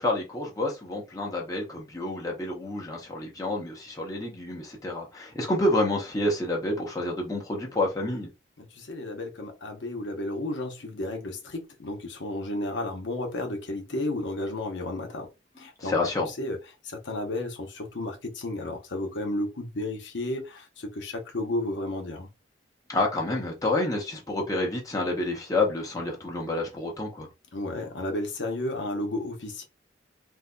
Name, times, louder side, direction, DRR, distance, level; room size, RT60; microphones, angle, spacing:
voice 1, 0.0-8.3 15.8-16.3 22.9-27.3, left 2 dB, 20° left, 0.8 m, -28 dB
voice 2, 8.6-15.3 15.6-15.9 16.4-16.6 16.8-22.3 27.5-29.6, left 1 dB, 80° left, 0.8 m, -32 dB
3.8 x 2.6 x 2.2 m
head